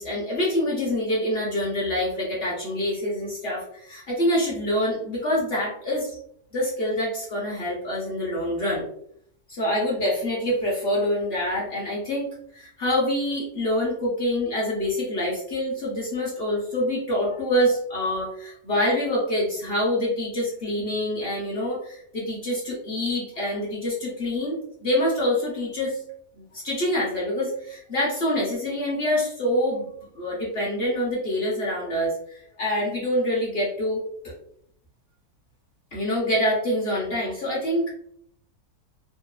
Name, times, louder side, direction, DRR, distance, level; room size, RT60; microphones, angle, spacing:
voice 1, 0.0-6.1 6.5-8.8 9.5-12.3 12.5-24.6 24.8-26.0 26.3-34.0 35.9-37.9, left 1 dB, 50° left, -5 dB, 0.8 m, -26 dB
2.9 x 2.0 x 2.2 m, 0.69 s
omnidirectional pair, 1.7 m